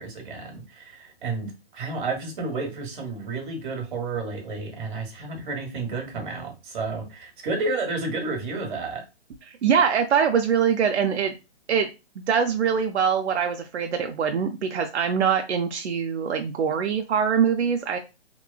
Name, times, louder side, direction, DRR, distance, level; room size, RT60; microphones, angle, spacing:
voice 1, 0.0-9.0, right 3 dB, 50° right, 2 dB, 1.2 m, -31 dB
voice 2, 9.5-11.3 11.7-11.9 12.3-18.0, right 7 dB, 80° right, 5 dB, 0.6 m, -23 dB
2.9 x 2.2 x 2.3 m, 0.27 s
hypercardioid pair, 150°, 33 cm